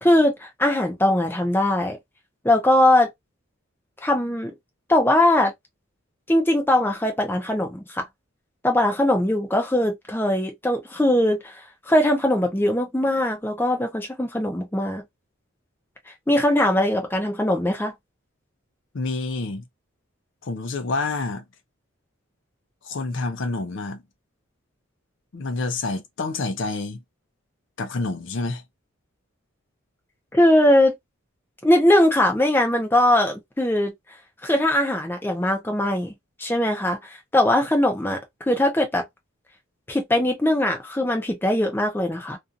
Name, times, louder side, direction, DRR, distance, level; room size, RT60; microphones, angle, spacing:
voice 1, 0.0-2.0 2.4-3.1 4.0-4.5 4.9-5.5 6.3-8.0 8.6-15.0 16.3-17.9 30.3-30.9 31.6-33.9 34.4-36.1 36.4-38.2 38.5-39.0 39.9-42.4, left 1 dB, 10° left, 0.5 m, -20 dB
voice 2, 18.9-19.6 20.4-21.4 22.8-24.0 25.3-27.0 27.8-28.6, left 3 dB, 60° left, 0.5 m, -28 dB
2.4 x 2.4 x 2.5 m
head